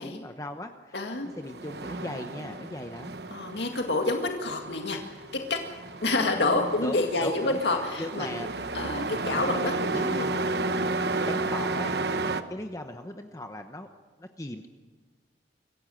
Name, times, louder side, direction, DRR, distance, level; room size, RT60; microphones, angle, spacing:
voice 1, 0.0-1.0 1.4-3.1 6.8-7.6 8.0-9.1 9.3-10.3 10.8-13.9 14.2-14.7, left 1 dB, 20° left, 6 dB, 1.0 m, -39 dB
voice 2, 0.9-1.3 3.3-5.6 6.0-8.3 8.7-10.3, left 2 dB, 80° left, 3 dB, 2.0 m, -28 dB
Truck, 1.3-12.4, right 3 dB, 70° right, 1.1 m, -32 dB
25.5 x 15.5 x 7.7 m, 1.5 s
head